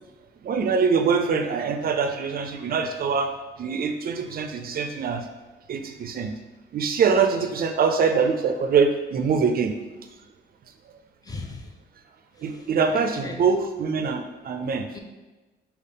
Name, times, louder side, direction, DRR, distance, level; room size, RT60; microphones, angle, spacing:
voice 1, 0.4-5.2 5.7-6.3 6.7-9.7 12.4-14.9, right 5 dB, 50° right, 7 dB, 0.4 m, -24 dB
voice 2, 11.2-11.7 12.4-12.7 12.9-13.5 14.9-15.0, left 3 dB, 20° left, 3 dB, 0.5 m, -38 dB
5.2 x 2.4 x 3.5 m, 1.2 s
cardioid pair, 90°, 20 cm